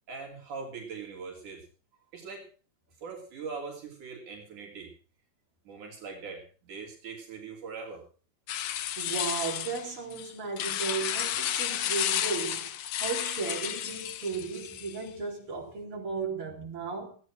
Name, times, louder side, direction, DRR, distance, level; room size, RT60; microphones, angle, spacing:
voice 1, 0.1-1.7 2.1-2.5 3.0-4.9 5.7-8.0, right 5 dB, 75° right, 4.5 m, -41 dB
sound 1, 8.5-15.1, left 11 dB, 80° left, 1.2 m, -32 dB
voice 2, 9.0-17.1, right 4 dB, 45° right, 4.6 m, -35 dB
16.5 x 9.6 x 6.1 m
omnidirectional pair, 3.6 m